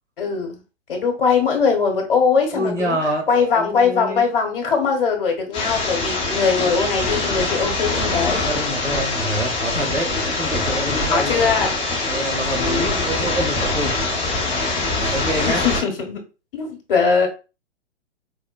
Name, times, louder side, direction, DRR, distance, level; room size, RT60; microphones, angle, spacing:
voice 1, 0.2-0.6 0.9-3.0 3.3-8.4 11.1-11.7 12.6-13.1 15.4-16.2 16.5-17.3, left 5 dB, 50° left, 4 dB, 1.1 m, -21 dB
voice 2, 2.5-3.3 3.6-4.2 6.6-6.7 8.5-11.4 12.0-13.9 15.1-15.6, right 1 dB, 80° right, 0 dB, 1.5 m, -26 dB
sound 1, 5.5-15.8, left 2 dB, 15° left, 0.7 m, -23 dB
4.6 x 2.1 x 2.2 m, 0.31 s
figure-of-eight pair, 115°, 36 cm